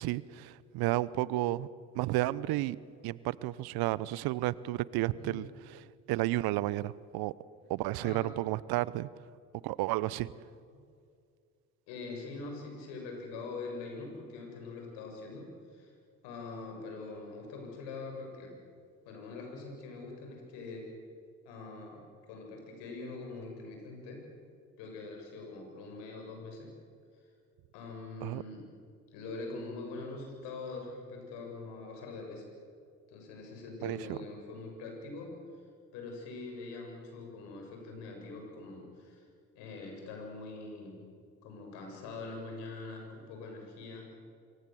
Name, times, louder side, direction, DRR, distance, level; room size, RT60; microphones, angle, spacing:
voice 1, 0.0-1.7 1.9-2.8 3.0-7.3 7.7-9.1 9.6-10.3 28.2-28.4 33.8-34.2, right 17 dB, 60° right, 20 dB, 0.9 m, -32 dB
voice 2, 8.0-8.3 11.9-15.9 16.2-18.6 19.0-20.9 21.5-24.3 24.8-26.7 27.7-28.7 29.1-32.5 33.1-35.4 35.9-39.2 39.5-41.0 41.4-44.1, left 3 dB, 70° left, 2 dB, 7.5 m, -43 dB
27.0 x 23.5 x 7.8 m, 2.2 s
hypercardioid pair, 55°, 43 cm